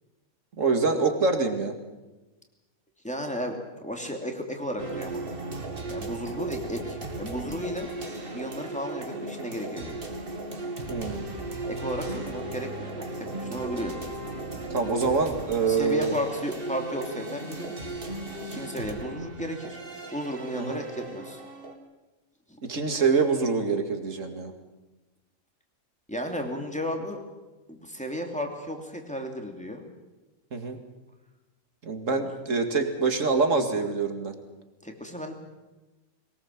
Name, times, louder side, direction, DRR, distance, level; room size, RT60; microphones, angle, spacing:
voice 1, 0.6-1.8 10.9-11.3 14.7-16.1 20.5-20.8 22.6-24.5 30.5-30.8 31.8-34.3, right 4 dB, 65° right, 6 dB, 2.5 m, -25 dB
voice 2, 3.0-5.2 5.9-7.9 8.3-10.0 11.7-13.1 13.3-14.0 15.7-17.7 18.4-19.8 20.1-21.4 22.5-22.6 26.1-27.2 27.7-29.8 32.1-32.2 34.8-35.3, equal, 5° left, 2 dB, 2.9 m, -34 dB
sound 1, 4.8-21.7, right 2 dB, 40° right, 2.3 m, -36 dB
22.0 x 19.5 x 7.4 m, 1.1 s
omnidirectional pair, 1.5 m